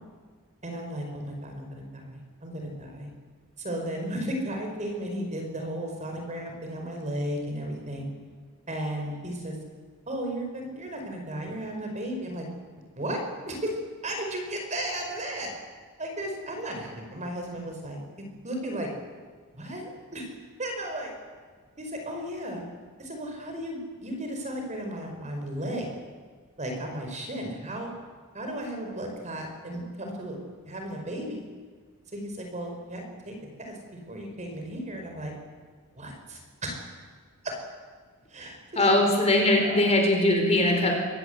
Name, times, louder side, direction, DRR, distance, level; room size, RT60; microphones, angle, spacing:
voice 1, 0.6-3.1 3.6-8.1 8.7-9.6 10.1-12.5 12.8-13.7 14.0-15.5 16.0-18.9 19.5-20.3 20.6-21.1 21.8-22.6 23.0-25.9 26.6-27.9 28.3-30.4 30.6-31.4 32.1-33.7 34.1-35.3 36.0-36.8 37.4-37.5 38.3-38.9 39.6-39.8, right 1 dB, 35° right, 3 dB, 4.8 m, -34 dB
voice 2, 38.8-41.0, left 1 dB, 30° left, 2 dB, 4.6 m, -21 dB
24.0 x 19.0 x 8.0 m, 1.5 s
head